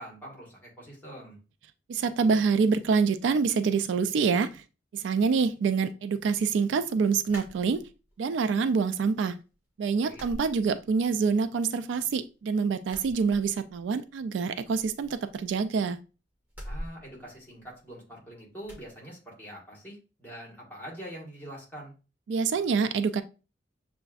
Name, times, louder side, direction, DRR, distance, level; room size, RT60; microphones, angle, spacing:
voice 1, 0.0-1.4 10.0-10.2 16.6-21.9, equal, 10° left, 1.6 m, -44 dB
voice 2, 1.9-4.6 4.9-7.9 8.2-9.4 9.8-16.0 22.3-23.2, right 5 dB, 70° right, 0.3 m, -26 dB
sound 1, 7.3-8.2 8.6-9.3 9.5-9.7 10.1-11.2 11.5-12.4 12.8-13.9 14.2-14.3 14.6-15.8 16.5-18.1 18.6-18.9, equal, 10° right, 1.4 m, -45 dB
6.7 x 2.5 x 2.4 m
head